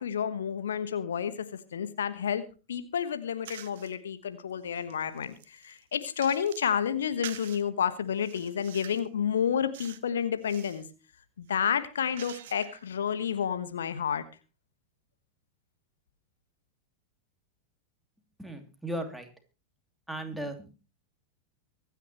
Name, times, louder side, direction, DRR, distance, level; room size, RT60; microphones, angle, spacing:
voice 1, 0.0-10.8 11.4-14.2, left 8 dB, 65° left, 12 dB, 1.3 m, -30 dB
sound 1, 3.4-3.9 4.5-6.7 7.2-7.6 8.2-9.1 9.7-10.1 10.4-10.9 11.4-12.9, right 11 dB, 55° right, 1.2 m, -46 dB
voice 2, 18.4-19.3 20.1-20.7, right 1 dB, 5° right, 5 dB, 2.8 m, -36 dB
24.0 x 9.9 x 3.1 m, 0.32 s
figure-of-eight pair, 90°, 0 cm